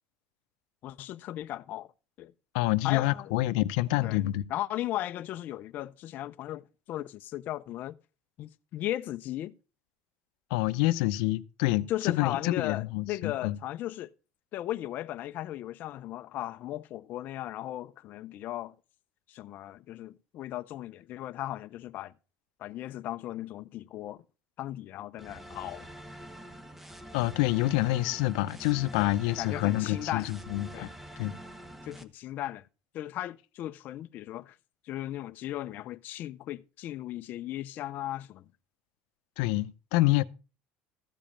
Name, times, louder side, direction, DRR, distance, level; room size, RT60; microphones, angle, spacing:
voice 1, 0.8-1.9 2.2-2.3 2.8-3.3 4.0-4.2 4.5-8.0 8.4-9.5 11.9-14.1 14.5-18.7 19.3-22.1 22.6-24.2 24.6-25.9 28.9-29.1 29.4-30.3 30.7-30.9 31.8-32.7 32.9-34.6 34.8-38.5, left 14 dB, 45° left, 0.5 m, -36 dB
voice 2, 2.5-4.4 10.5-13.6 27.1-30.9 31.2-31.3 39.4-40.2, left 17 dB, 90° left, 0.7 m, -27 dB
sound 1, 25.2-32.0, equal, 5° right, 0.9 m, -46 dB
14.0 x 5.2 x 7.1 m
cardioid pair, 150°, 4 cm